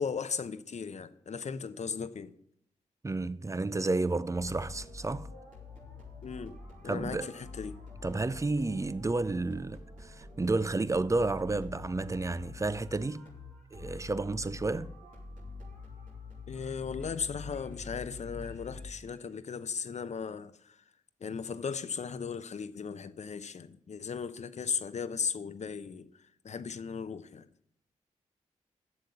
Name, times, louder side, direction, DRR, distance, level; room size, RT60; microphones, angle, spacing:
voice 1, 0.0-2.3 6.2-6.6 6.8-7.8 16.5-20.7 21.2-26.1 26.4-27.5, left 6 dB, 60° left, 0.8 m, -37 dB
voice 2, 3.0-5.3 6.8-7.3 8.0-13.3 13.7-14.9, right 3 dB, 25° right, 0.6 m, -31 dB
sound 1, 4.3-19.3, left 3 dB, 85° right, 3.2 m, -46 dB
8.0 x 7.1 x 8.2 m
supercardioid pair, 45°, 13 cm